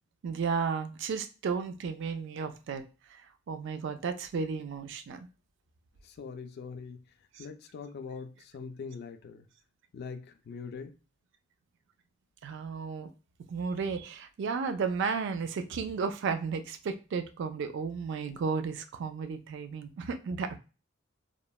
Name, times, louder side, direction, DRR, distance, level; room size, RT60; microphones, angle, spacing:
voice 1, 0.2-2.8 3.5-5.2 12.4-13.1 13.5-20.6, right 5 dB, 65° right, 0.3 m, -33 dB
voice 2, 6.0-7.0 7.4-9.5 9.9-11.0, left 5 dB, 55° left, 0.3 m, -42 dB
3.0 x 2.1 x 2.2 m
head